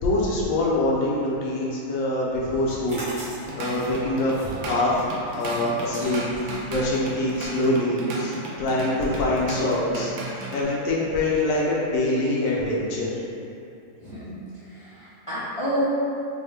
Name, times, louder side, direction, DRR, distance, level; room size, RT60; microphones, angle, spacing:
voice 1, 0.0-3.0 3.3-5.0 5.4-13.2, left 1 dB, 65° left, -4 dB, 1.0 m, -25 dB
sound 1, 2.6-8.3, right 1 dB, 85° right, 1.7 m, -41 dB
Drum kit / Drum, 3.3-10.6, right 1 dB, 70° right, 0.9 m, -35 dB
voice 2, 14.0-14.3 14.7-15.8, equal, 50° left, -12 dB, 0.3 m, -30 dB
4.2 x 2.1 x 3.4 m, 2.6 s
omnidirectional pair, 1.6 m